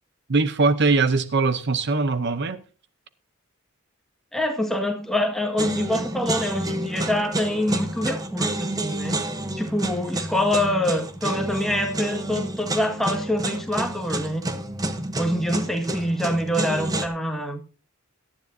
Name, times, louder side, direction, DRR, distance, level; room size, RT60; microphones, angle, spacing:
voice 1, 0.3-2.6, right 3 dB, 50° right, 0.7 m, -21 dB
voice 2, 4.3-9.1 9.6-14.4 15.2-17.6, left 1 dB, ahead, 1.7 m, -25 dB
sound 1, 5.6-17.1, right 1 dB, 15° right, 0.9 m, -29 dB
18.0 x 12.5 x 2.7 m
head